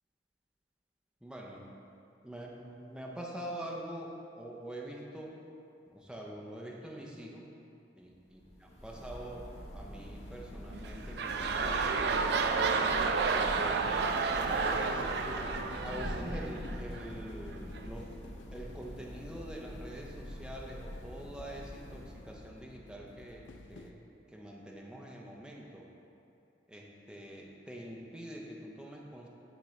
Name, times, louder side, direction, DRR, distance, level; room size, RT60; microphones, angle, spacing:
voice 1, 1.2-1.7 2.2-5.4 5.9-7.5 8.0-8.1 8.8-12.2 13.0-14.0 14.5-15.1 15.8-18.1 18.5-25.9 26.7-29.3, right 1 dB, 5° right, -2 dB, 0.5 m, -45 dB
Thunder / Rain, 8.3-22.7, equal, 35° left, 0.8 m, -45 dB
sound 1, 10.1-23.9, left 2 dB, 85° left, 0.4 m, -50 dB
sound 2, 10.7-17.1 17.8-17.9, right 4 dB, 65° right, 0.4 m, -31 dB
10.0 x 3.7 x 3.1 m, 2.6 s
head